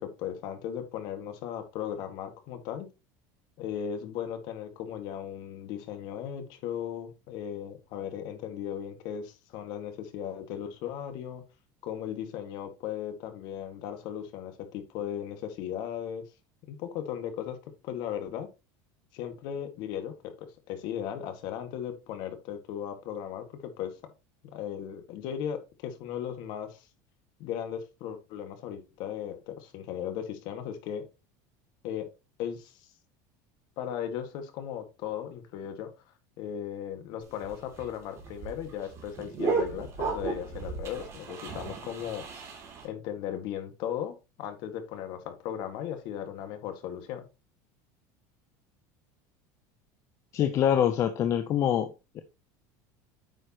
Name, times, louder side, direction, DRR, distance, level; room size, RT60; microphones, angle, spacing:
voice 1, 0.0-2.9 3.6-11.4 11.8-16.2 16.7-17.6 17.8-18.5 19.1-24.0 24.5-26.9 27.4-31.0 31.8-32.1 32.4-32.9 33.8-35.9 36.4-42.2 42.8-47.2, left 9 dB, 50° left, 8 dB, 1.9 m, -37 dB
sound 1, 37.2-42.9, right 5 dB, 30° right, 3.0 m, -34 dB
voice 2, 50.3-51.9 52.1-52.2, left 10 dB, 30° left, 9 dB, 0.7 m, -25 dB
9.2 x 6.6 x 3.0 m, 0.26 s
cardioid pair, 165°, 9 cm